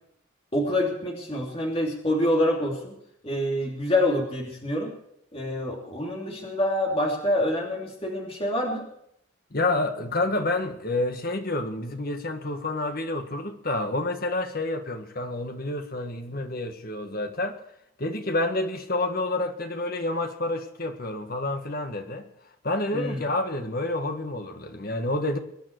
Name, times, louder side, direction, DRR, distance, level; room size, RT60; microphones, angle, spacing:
voice 1, 0.5-2.9 3.2-4.9 5.3-8.9 22.9-23.2, left 1 dB, 25° left, 3.0 m, -26 dB
voice 2, 9.5-17.6 18.0-22.3 22.6-25.4, left 2 dB, 45° left, 1.7 m, -29 dB
23.0 x 10.5 x 4.7 m
head